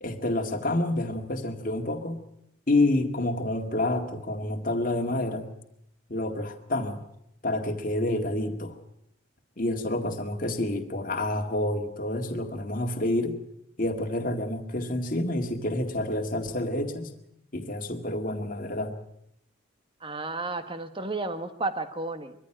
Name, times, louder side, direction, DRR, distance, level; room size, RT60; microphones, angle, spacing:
voice 1, 0.0-2.2 2.7-5.5 6.1-7.0 7.4-8.8 9.6-13.4 13.8-17.1 17.5-18.9, left 1 dB, 40° left, 4 dB, 2.0 m, -28 dB
voice 2, 20.0-22.3, right 2 dB, 25° right, 9 dB, 1.5 m, -32 dB
23.0 x 14.5 x 9.0 m, 0.76 s
head